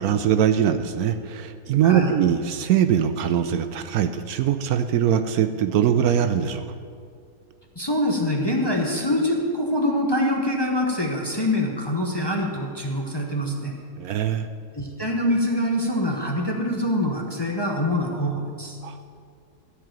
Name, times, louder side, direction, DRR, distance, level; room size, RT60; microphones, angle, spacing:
voice 1, 0.0-6.6 14.0-14.5 18.8-19.0, right 9 dB, 75° right, 9 dB, 1.0 m, -22 dB
voice 2, 7.8-13.7 14.7-18.8, left 1 dB, 20° left, -1 dB, 0.9 m, -24 dB
13.5 x 4.8 x 9.0 m, 2.2 s
omnidirectional pair, 1.7 m